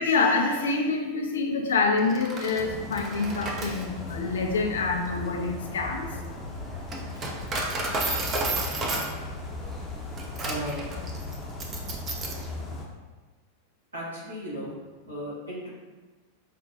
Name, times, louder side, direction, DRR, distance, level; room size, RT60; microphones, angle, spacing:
voice 1, 0.0-6.1, left 4 dB, 65° left, 3 dB, 0.4 m, -26 dB
Coin (dropping), 2.0-12.5, right 2 dB, 25° right, 0.5 m, -33 dB
sound 1, 2.6-12.8, left 2 dB, 15° left, 0.7 m, -38 dB
voice 2, 10.4-10.8 13.9-15.7, equal, 75° right, -6 dB, 1.4 m, -36 dB
5.1 x 2.2 x 2.6 m, 1.3 s
figure-of-eight pair, 90°, 0 cm